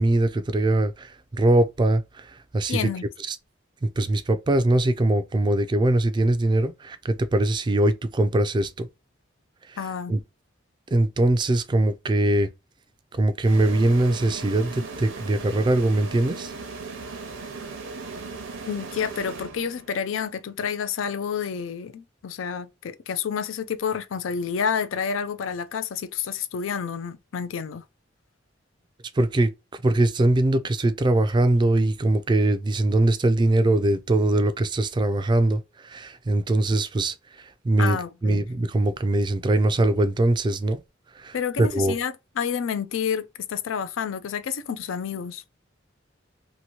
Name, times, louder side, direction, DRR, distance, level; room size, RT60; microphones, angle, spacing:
voice 1, 0.0-2.9 3.3-3.4 3.8-8.9 9.7-9.8 10.1-10.2 10.9-12.5 13.1-16.5 29.1-40.8 41.1-42.0, right 1 dB, 25° right, 0.3 m, -22 dB
voice 2, 2.7-3.0 9.8-10.1 18.7-27.8 37.8-38.4 41.3-45.4, left 7 dB, 85° left, 0.4 m, -29 dB
sound 1, 13.4-20.1, right 4 dB, 80° right, 0.7 m, -37 dB
2.9 x 2.6 x 2.8 m
head